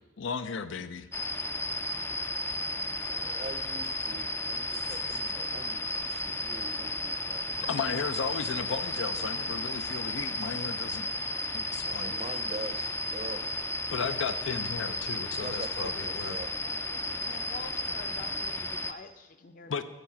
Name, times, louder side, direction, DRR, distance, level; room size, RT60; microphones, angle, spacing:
voice 1, 0.2-1.1 4.7-4.8 7.7-11.1 11.5-12.1 13.9-16.4 19.7-19.8, left 5 dB, 85° left, 12 dB, 0.5 m, -35 dB
sound 1, 1.1-18.9, left 1 dB, 15° left, 0.3 m, -33 dB
voice 2, 2.8-7.8 11.8-13.6 15.4-16.5, right 2 dB, 35° right, 9 dB, 0.6 m, -44 dB
voice 3, 16.6-19.8, left 3 dB, 45° left, 8 dB, 0.6 m, -47 dB
10.5 x 7.2 x 5.8 m, 1.2 s
head